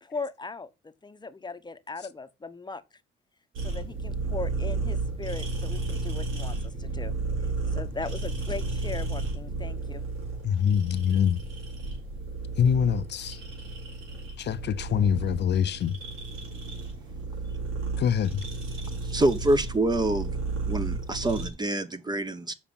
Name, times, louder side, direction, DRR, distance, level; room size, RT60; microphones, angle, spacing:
voice 1, 0.0-2.8 3.6-7.1 7.7-10.0, left 3 dB, 20° left, 1.0 m, -38 dB
sound 1, 3.5-21.5, right 3 dB, 85° right, 3.9 m, -33 dB
voice 2, 10.4-11.4 12.6-13.4 14.4-16.0 18.0-18.4, left 8 dB, 60° left, 0.7 m, -24 dB
voice 3, 19.0-20.3 20.7-22.5, right 1 dB, 20° right, 1.1 m, -26 dB
7.2 x 5.0 x 7.0 m
cardioid pair, 90°, 20 cm